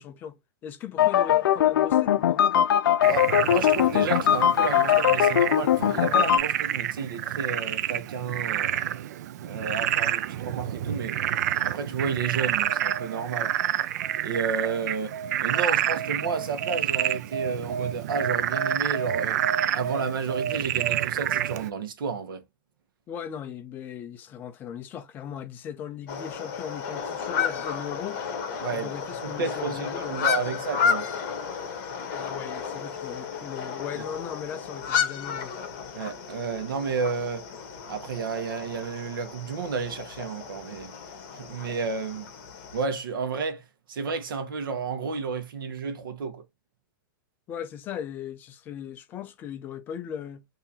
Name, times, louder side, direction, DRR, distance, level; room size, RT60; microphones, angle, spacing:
voice 1, 0.0-2.5 14.8-14.9 23.1-28.2 28.7-30.6 32.1-35.5 47.5-50.4, left 9 dB, 15° left, 0.4 m, -38 dB
sound 1, 1.0-6.4, left 10 dB, 90° left, 0.4 m, -21 dB
Frog, 3.0-21.7, right 11 dB, 50° right, 0.4 m, -28 dB
voice 2, 3.0-8.9 9.4-11.2 11.6-13.5 14.2-15.1 15.4-19.4 19.7-22.4 28.6-28.9 29.2-31.1 34.0-34.1 35.9-37.4 37.9-40.9 41.3-42.3 42.7-46.4, right 5 dB, 85° right, 1.1 m, -31 dB
sound 2, 26.1-42.8, left 7 dB, 40° left, 1.3 m, -32 dB
3.7 x 2.8 x 2.9 m
supercardioid pair, 170°, 11 cm